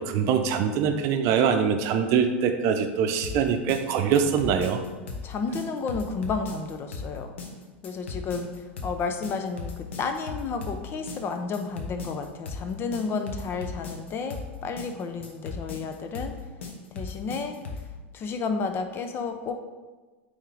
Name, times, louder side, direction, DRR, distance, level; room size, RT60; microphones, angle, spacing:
voice 1, 0.0-4.8, right 7 dB, 50° right, 7 dB, 0.7 m, -23 dB
sound 1, 3.2-17.9, left 4 dB, 75° left, 1.1 m, -37 dB
voice 2, 5.2-7.3 7.8-16.4 16.9-17.6 18.1-19.6, left 4 dB, 35° left, 7 dB, 0.7 m, -32 dB
8.8 x 3.6 x 3.4 m, 1.3 s
hypercardioid pair, 95°, 7 cm